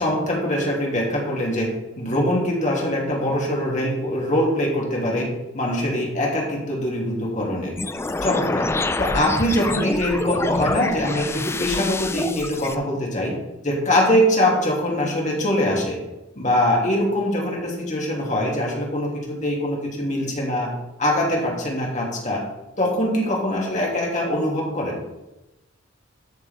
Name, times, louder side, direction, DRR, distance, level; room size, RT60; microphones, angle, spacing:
voice 1, 0.0-1.7 2.0-5.3 5.5-7.7 8.2-8.7 9.0-13.4 13.6-16.0 16.4-20.7 21.0-22.4 22.8-24.9, left 1 dB, 40° left, -2 dB, 2.6 m, -23 dB
sound 1, 7.8-12.8, left 2 dB, 15° left, 0.4 m, -26 dB
13.5 x 6.7 x 3.6 m, 0.99 s
head